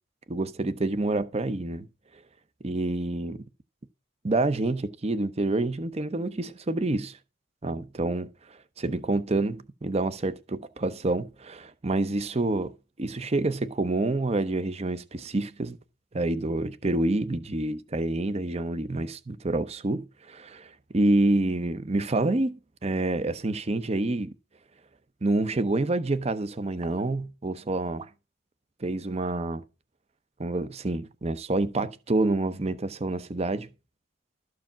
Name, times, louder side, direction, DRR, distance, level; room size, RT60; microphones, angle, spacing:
voice 1, 0.3-1.9 2.6-3.4 4.2-7.2 7.6-8.3 8.8-12.7 13.0-15.8 16.1-24.3 25.2-28.1 28.8-29.6 30.4-33.7, right 2 dB, 30° right, 0.7 m, -27 dB
13.0 x 4.8 x 7.2 m
head